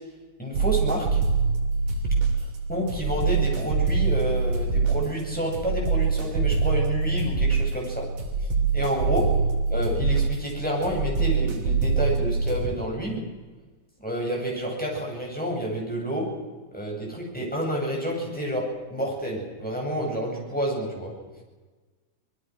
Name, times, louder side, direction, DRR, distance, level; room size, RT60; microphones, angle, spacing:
voice 1, 0.4-1.2 2.3-8.1 8.4-8.5 8.7-9.3 9.7-13.2 14.0-16.3 16.7-21.1, equal, ahead, -2 dB, 7.7 m, -29 dB
sound 1, 0.5-12.7, right 4 dB, 65° right, 4.3 m, -25 dB
26.0 x 21.5 x 6.4 m, 1.3 s
omnidirectional pair, 3.9 m